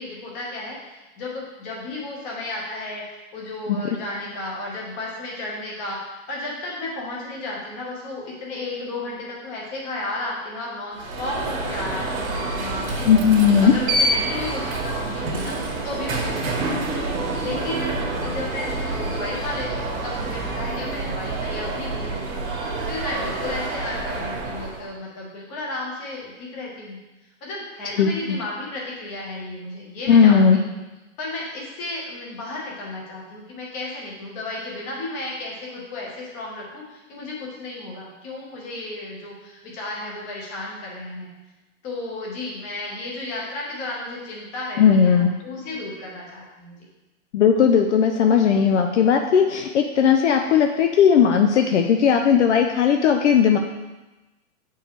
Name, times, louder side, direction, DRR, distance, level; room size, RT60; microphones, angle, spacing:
voice 1, 0.0-13.1 13.5-15.6 15.8-17.9 18.2-22.6 22.9-27.0 27.4-30.7 31.2-41.3 41.8-46.9, left 2 dB, 15° left, -3 dB, 0.9 m, -33 dB
Alarm, 10.9-24.9, right 2 dB, 85° right, 1.6 m, -27 dB
voice 2, 13.1-13.7 28.0-28.1 30.1-30.6 44.8-45.3 47.3-53.6, left 7 dB, 60° left, 4 dB, 0.5 m, -17 dB
7.7 x 4.6 x 3.1 m, 1.1 s
hypercardioid pair, 175°, 40 cm